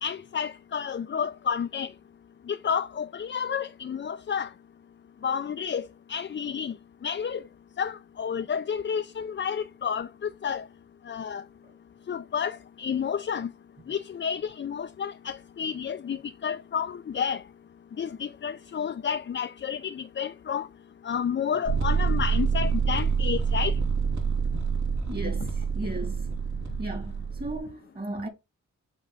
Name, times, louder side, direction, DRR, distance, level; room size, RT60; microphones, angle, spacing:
voice 1, 0.0-1.9 2.5-4.5 5.2-6.7 7.0-7.4 7.8-10.6 11.1-11.4 12.1-13.5 13.9-17.4 18.0-20.7 21.0-23.7, left 7 dB, 40° left, 0.4 m, -30 dB
sound 1, 21.7-27.6, right 6 dB, 65° right, 2.4 m, -27 dB
voice 2, 25.1-26.3 26.8-28.3, right 1 dB, 30° right, 2.0 m, -36 dB
7.3 x 3.8 x 3.8 m
cardioid pair, 70°, 31 cm